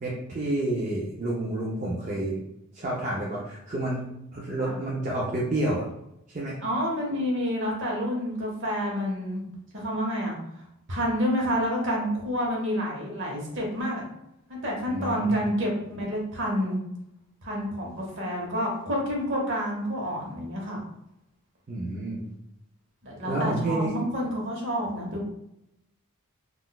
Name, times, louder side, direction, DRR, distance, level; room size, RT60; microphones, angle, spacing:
voice 1, 0.0-2.4 2.7-5.8 6.3-6.6 14.9-15.4 21.7-22.3 23.2-23.9, right 1 dB, 35° right, -5 dB, 0.5 m, -29 dB
voice 2, 6.6-9.4 9.7-10.4 10.9-14.0 14.5-16.8 17.4-20.8 23.0-25.2, equal, 55° right, -1 dB, 0.9 m, -28 dB
3.8 x 2.4 x 2.2 m, 0.82 s
head